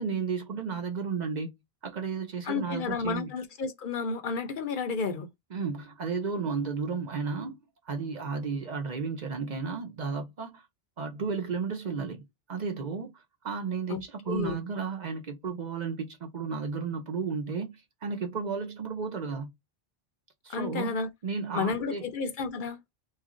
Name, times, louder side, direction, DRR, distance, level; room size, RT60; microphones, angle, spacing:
voice 1, 0.0-1.5 1.8-3.3 5.5-7.6 7.9-10.6 11.0-12.2 12.5-17.7 18.0-19.5 20.4-20.9 21.2-22.0, right 5 dB, 50° right, 0.7 m, -33 dB
voice 2, 2.4-5.3 13.9-14.6 20.5-21.1 21.5-22.8, left 5 dB, 60° left, 0.7 m, -31 dB
3.0 x 2.4 x 3.7 m
omnidirectional pair, 1.0 m